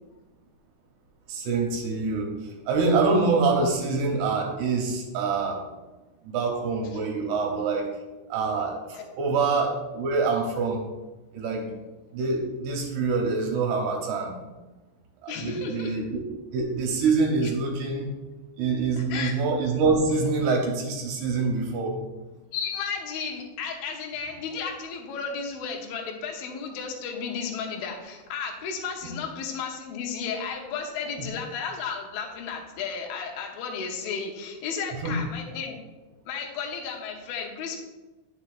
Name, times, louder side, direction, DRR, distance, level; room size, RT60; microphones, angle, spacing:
voice 1, 1.3-2.3 2.7-5.6 6.2-7.9 8.3-10.8 11.3-11.7 12.1-14.3 15.2-16.2 16.5-18.1 18.6-21.9 35.0-35.2, right 4 dB, 75° right, 1 dB, 2.9 m, -25 dB
voice 2, 15.3-16.0 19.0-19.3 22.5-35.8 36.3-37.8, left 6 dB, 75° left, 1 dB, 2.4 m, -33 dB
9.6 x 6.7 x 2.5 m, 1.1 s
omnidirectional pair, 5.0 m